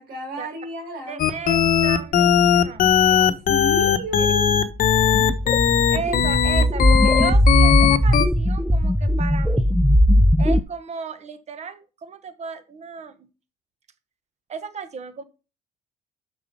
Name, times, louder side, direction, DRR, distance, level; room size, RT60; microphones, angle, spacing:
voice 1, 0.0-1.3 3.0-4.6 4.9-5.3, right 2 dB, 85° right, 0 dB, 4.7 m, -33 dB
voice 2, 1.1-2.9 4.2-4.3 5.9-9.7 10.4-13.3 14.5-15.2, right 5 dB, 40° right, 11 dB, 1.3 m, -34 dB
sound 1, 1.2-8.3, left 8 dB, 55° left, 1.1 m, -18 dB
sound 2, 4.8-10.6, equal, ahead, 0.5 m, -19 dB
6.7 x 6.3 x 5.4 m, 0.32 s
cardioid pair, 110°, 17 cm